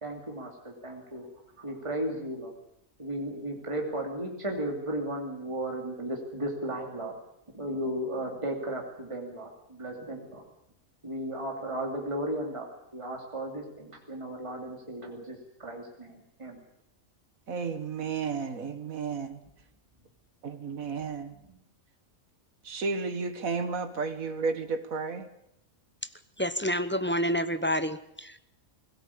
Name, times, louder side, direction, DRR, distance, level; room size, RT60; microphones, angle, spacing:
voice 1, 0.0-1.3 1.6-2.5 3.0-7.1 7.5-10.4 11.0-16.6 21.5-21.6, right 1 dB, 20° right, 0 dB, 2.9 m, -35 dB
voice 2, 17.5-19.3 20.4-21.3 22.6-25.3, right 5 dB, 80° right, 9 dB, 2.0 m, -32 dB
voice 3, 26.4-28.5, equal, 10° left, 10 dB, 0.6 m, -29 dB
21.0 x 17.0 x 8.6 m, 0.81 s
omnidirectional pair, 1.4 m